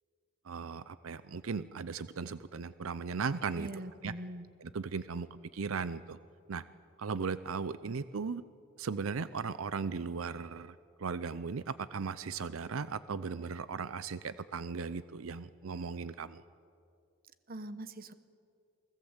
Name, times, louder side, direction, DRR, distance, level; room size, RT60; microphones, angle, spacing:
voice 1, 0.4-3.7 4.0-4.1 4.6-6.2 6.5-6.6 7.0-8.4 8.8-16.4, right 5 dB, 85° right, 15 dB, 0.6 m, -37 dB
voice 2, 3.5-4.5 17.5-18.1, right 1 dB, 45° right, 13 dB, 1.1 m, -42 dB
28.5 x 19.5 x 8.1 m, 2.4 s
head